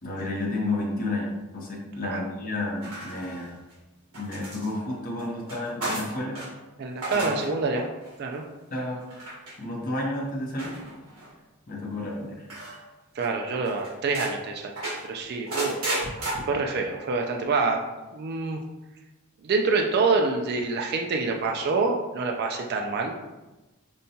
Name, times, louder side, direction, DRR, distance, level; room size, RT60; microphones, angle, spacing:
voice 1, 0.0-3.5 4.1-6.4 7.1-7.3 8.7-9.0 9.6-10.7 11.7-12.5, left 2 dB, 40° left, -4 dB, 0.8 m, -31 dB
sound 1, 2.8-3.7 4.1-6.5 6.9-7.5 7.8-8.1 9.1-9.5 10.6-11.3 12.5-12.8 13.2-13.3 13.6-14.3 14.8-16.3, right 1 dB, 85° right, 1.3 m, -34 dB
voice 2, 6.8-7.9 8.2-8.4 13.2-14.8 15.1-16.1 16.5-17.8 18.1-18.6 19.4-23.2, right 4 dB, 45° right, 2 dB, 0.3 m, -26 dB
5.2 x 2.2 x 2.7 m, 1.1 s
head